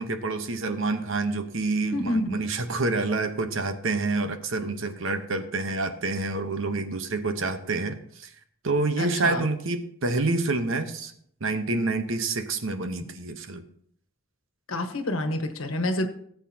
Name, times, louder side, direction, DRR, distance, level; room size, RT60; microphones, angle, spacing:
voice 1, 0.0-8.3 8.6-11.1 11.4-13.6, right 3 dB, 65° right, 8 dB, 1.0 m, -28 dB
voice 2, 1.9-2.4 9.0-9.4 14.7-16.1, left 1 dB, 70° left, 7 dB, 1.4 m, -28 dB
18.0 x 8.2 x 2.8 m, 0.66 s
head